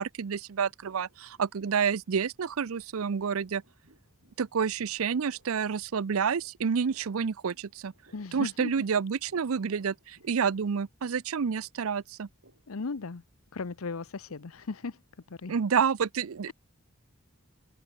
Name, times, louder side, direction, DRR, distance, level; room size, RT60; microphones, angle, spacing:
voice 1, 0.0-3.6 4.4-7.9 8.3-12.3 15.5-16.5, right 6 dB, 85° right, 0.5 m, -29 dB
sound 1, 0.8-2.1 2.3-15.5, right 1 dB, 65° right, 6.6 m, -64 dB
voice 2, 8.1-8.7 12.7-13.2 13.5-15.0 15.3-15.5, left 4 dB, 85° left, 0.8 m, -36 dB
head